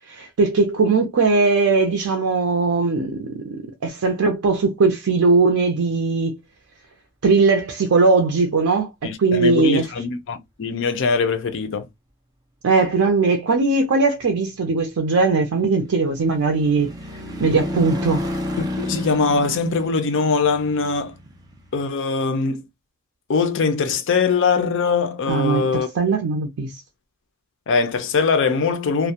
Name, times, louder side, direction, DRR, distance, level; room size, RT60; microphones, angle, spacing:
voice 1, 0.1-6.4 7.2-9.9 12.6-16.9 17.4-18.2 25.3-26.8, right 4 dB, 80° right, 0.5 m, -19 dB
voice 2, 9.0-11.9 18.6-21.1 21.7-22.7 23.3-25.9 27.7-29.1, left 4 dB, 55° left, 0.5 m, -21 dB
sound 1, 15.2-21.8, left 1 dB, 20° right, 0.6 m, -31 dB
2.3 x 2.1 x 2.7 m
head